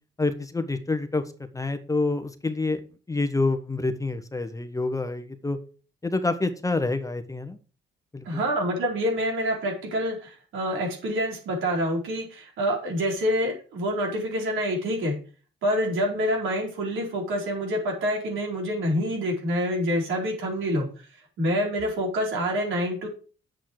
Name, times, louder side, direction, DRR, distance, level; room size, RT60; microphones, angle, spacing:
voice 1, 0.2-1.2 1.5-2.8 3.1-5.6 6.0-7.6 8.1-8.3, left 3 dB, 15° left, 9 dB, 1.2 m, -27 dB
voice 2, 8.2-15.2 15.6-20.8 21.4-23.1, equal, 80° right, 0 dB, 4.7 m, -27 dB
8.4 x 7.8 x 4.8 m, 0.37 s
cardioid pair, 90°, 20 cm